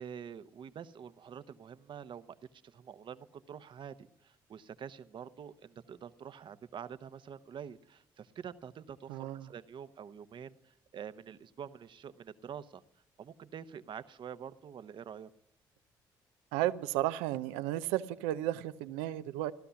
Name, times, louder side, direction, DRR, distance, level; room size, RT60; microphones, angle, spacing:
voice 1, 0.0-12.8 13.2-15.3, right 8 dB, 55° right, 12 dB, 0.9 m, -47 dB
voice 2, 9.1-9.5 16.5-19.5, right 14 dB, 90° right, 14 dB, 0.6 m, -33 dB
15.5 x 12.5 x 7.0 m, 0.77 s
supercardioid pair, 55°, 10 cm